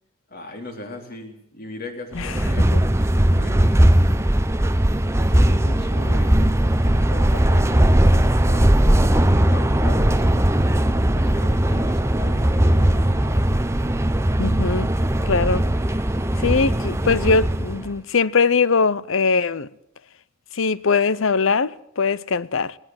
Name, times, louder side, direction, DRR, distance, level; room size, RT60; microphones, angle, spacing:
voice 1, 0.3-4.1 5.1-13.5, left 1 dB, 45° left, 3.5 m, -38 dB
sound 1, 2.1-17.9, right 1 dB, 15° right, 0.7 m, -19 dB
voice 2, 14.4-14.9 15.3-15.7 16.4-19.7 20.5-22.8, left 4 dB, 65° left, 0.7 m, -21 dB
18.5 x 18.5 x 7.8 m
head